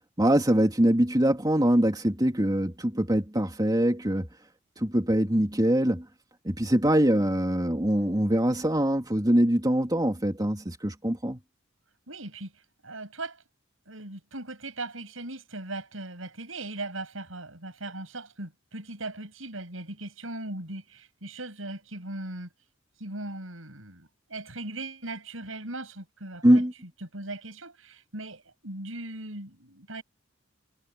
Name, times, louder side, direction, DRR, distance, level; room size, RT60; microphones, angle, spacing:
voice 1, 0.2-4.3 4.8-6.0 6.4-11.4 26.4-26.7, right 1 dB, 20° right, 2.9 m, -23 dB
voice 2, 12.1-13.4 13.9-22.5 23.0-26.6 27.0-30.0, right 2 dB, 85° right, 7.4 m, -39 dB
head